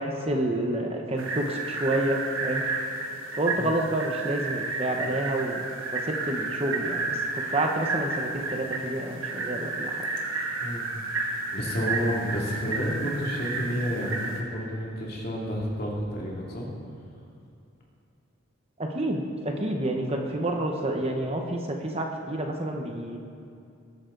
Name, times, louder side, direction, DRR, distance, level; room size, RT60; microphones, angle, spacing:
voice 1, 0.0-2.6 3.4-5.6 5.9-10.1 18.8-23.2, right 1 dB, 30° right, 2 dB, 1.0 m, -29 dB
sound 1, 1.2-14.4, right 3 dB, 70° right, 1.7 m, -32 dB
voice 2, 11.2-16.7, equal, 45° left, -3 dB, 2.6 m, -30 dB
20.0 x 11.5 x 3.9 m, 2.5 s
head